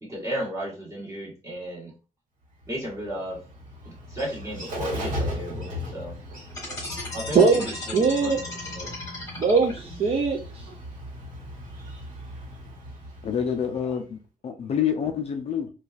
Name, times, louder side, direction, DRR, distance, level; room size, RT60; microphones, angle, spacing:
voice 1, 0.1-1.9 2.7-3.4 3.8-6.1 7.1-8.3 8.6-8.9, equal, 20° right, 1.4 m, -34 dB
Bird, 2.6-14.1, left 1 dB, 55° right, 1.3 m, -37 dB
sound 1, 6.5-10.1, left 2 dB, 25° left, 1.3 m, -36 dB
voice 2, 7.3-8.4 9.4-10.4, right 4 dB, 40° right, 0.5 m, -21 dB
voice 3, 13.2-15.7, left 8 dB, 45° left, 0.4 m, -27 dB
3.8 x 2.3 x 2.4 m
wide cardioid pair, 175°, 15 cm